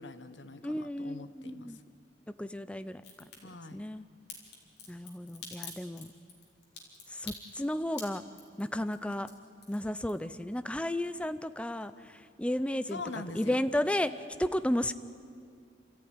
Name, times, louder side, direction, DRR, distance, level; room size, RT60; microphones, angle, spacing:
voice 1, 0.0-1.8 3.4-3.8 12.9-13.6, left 3 dB, 90° left, 11 dB, 1.2 m, -43 dB
voice 2, 0.6-1.8 2.4-3.0 3.7-4.0 4.9-6.1 7.1-8.2 8.6-9.3 9.7-13.0 13.4-14.9, left 1 dB, 5° left, 12 dB, 0.5 m, -33 dB
Crack, 3.0-3.4 4.3-10.5 10.8-11.5 11.8-11.9, left 5 dB, 60° left, 3.9 m, -47 dB
29.5 x 14.0 x 9.8 m, 2.4 s
head